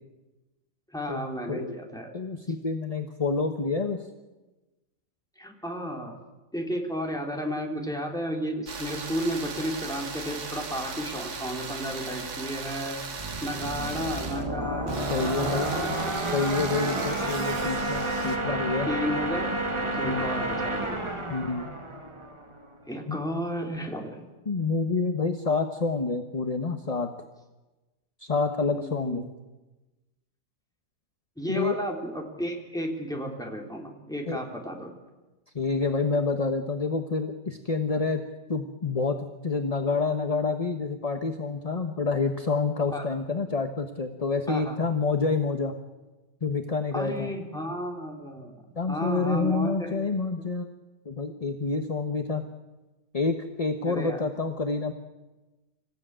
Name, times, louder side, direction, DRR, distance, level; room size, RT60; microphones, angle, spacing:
voice 1, 0.9-2.1 5.4-6.1 6.5-13.0 13.4-16.2 16.8-17.2 18.9-21.0 22.9-24.3 28.7-29.2 31.4-34.9 42.9-43.0 44.5-44.8 46.9-50.0 53.8-54.2, equal, ahead, 1 dB, 3.3 m, -33 dB
voice 2, 1.5-1.8 2.1-4.0 15.1-16.0 16.3-18.9 20.0-20.3 21.3-21.7 23.1-23.2 24.5-27.1 28.2-29.2 31.5-31.8 34.3-34.4 35.5-38.2 38.5-45.7 46.4-47.3 48.8-50.7 51.0-52.4 53.1-54.9, left 4 dB, 25° left, 5 dB, 0.9 m, -28 dB
sound 1, 8.7-18.4, right 4 dB, 60° right, 2.2 m, -37 dB
sound 2, 13.2-22.7, right 2 dB, 15° right, 1.7 m, -30 dB
26.0 x 15.0 x 8.9 m, 1.1 s
omnidirectional pair, 1.9 m